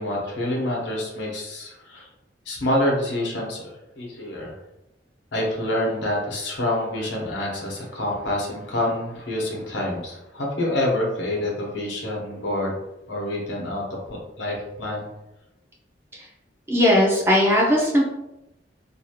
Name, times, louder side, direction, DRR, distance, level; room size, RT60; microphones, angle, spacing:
voice 1, 0.0-2.1 2.5-4.5 5.3-12.8 13.1-13.8 14.1-15.1, left 1 dB, 85° left, -2 dB, 0.9 m, -27 dB
voice 2, 16.7-18.0, left 1 dB, 15° right, -3 dB, 0.4 m, -18 dB
2.6 x 2.4 x 2.8 m, 0.92 s
head